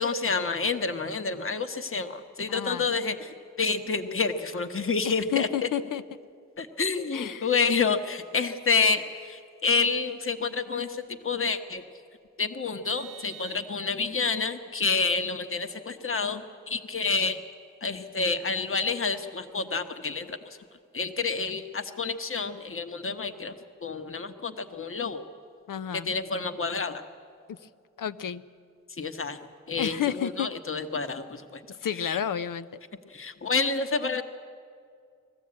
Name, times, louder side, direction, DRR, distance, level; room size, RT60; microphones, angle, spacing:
voice 1, 0.0-5.7 6.6-11.8 12.4-17.4 17.8-20.4 20.9-23.6 23.8-25.2 25.9-27.0 29.0-29.4 29.7-31.6 32.0-32.2 33.1-34.2, left 4 dB, 40° left, 8 dB, 1.2 m, -29 dB
voice 2, 2.5-2.8 5.0-6.0 7.1-7.5 25.7-26.1 27.5-27.6 28.0-28.4 29.8-30.5 31.8-32.8, left 9 dB, 75° left, 14 dB, 0.7 m, -31 dB
Vehicle horn car horn honking, 12.8-14.2, right 10 dB, 40° right, 1.2 m, -46 dB
21.0 x 14.5 x 8.6 m, 2.3 s
wide cardioid pair, 80°, 32 cm